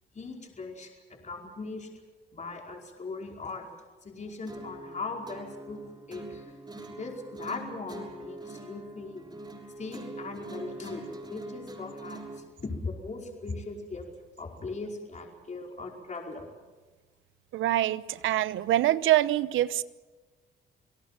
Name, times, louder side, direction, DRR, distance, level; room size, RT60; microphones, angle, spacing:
voice 1, 0.1-1.9 2.3-3.7 4.0-6.5 6.9-9.3 9.8-14.1 14.4-16.5, left 3 dB, 35° left, 1 dB, 4.9 m, -39 dB
sound 1, 4.5-12.5, right 2 dB, 20° right, 6.7 m, -43 dB
voice 2, 17.5-19.8, right 14 dB, 80° right, 16 dB, 0.9 m, -25 dB
28.5 x 18.0 x 7.5 m, 1.3 s
cardioid pair, 90°, 20 cm